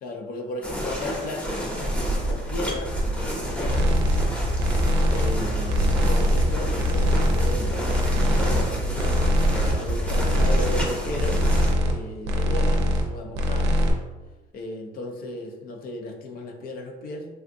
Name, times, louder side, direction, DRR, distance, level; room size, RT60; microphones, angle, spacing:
voice 1, 0.0-3.9 5.1-11.4 11.9-13.8 14.5-17.3, left 2 dB, 60° left, 3 dB, 0.5 m, -35 dB
sound 1, 0.6-11.7, right 1 dB, 5° left, 0.7 m, -27 dB
sound 2, 3.7-4.3 4.6-5.4 5.7-6.5 6.8-7.6 7.9-8.7 9.0-9.8 10.0-10.8 11.1-12.0 12.2-13.1 13.3-13.9, left 1 dB, 85° right, 0.5 m, -22 dB
3.4 x 2.5 x 2.6 m, 1.2 s
cardioid pair, 110°, 17 cm